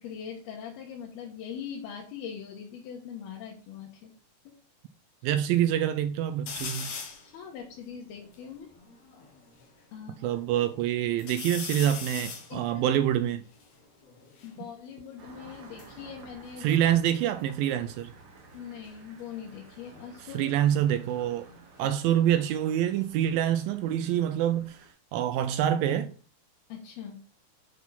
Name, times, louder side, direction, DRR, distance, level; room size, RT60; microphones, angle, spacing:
voice 1, 0.0-4.1 4.4-4.6 7.2-8.7 9.9-10.2 12.5-12.8 14.4-16.8 18.5-20.5 26.7-27.2, left 8 dB, 80° left, 3.3 m, -41 dB
voice 2, 5.2-7.0 10.2-13.4 16.6-18.1 20.2-21.5 21.8-26.1, right 11 dB, 80° right, 2.1 m, -26 dB
sound 1, 6.5-7.3 7.9-8.0 8.1-9.7 10.2-10.8 11.2-14.6 15.5-17.4 17.7-18.2 19.7-22.4 22.7-23.5, left 6 dB, 55° left, 2.2 m, -42 dB
Engine starting, 15.2-24.9, right 4 dB, 60° right, 1.2 m, -53 dB
8.1 x 4.5 x 5.7 m
omnidirectional pair, 4.4 m